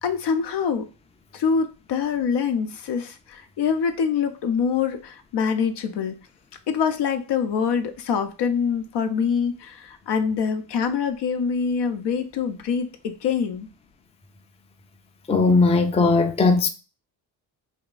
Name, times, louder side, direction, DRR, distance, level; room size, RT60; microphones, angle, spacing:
voice 1, 0.0-0.9 1.3-6.2 6.7-13.7, left 6 dB, 55° left, 0.8 m, -25 dB
voice 2, 15.3-16.7, left 3 dB, 15° left, 0.6 m, -18 dB
3.6 x 2.4 x 3.9 m
supercardioid pair, 65°, 48 cm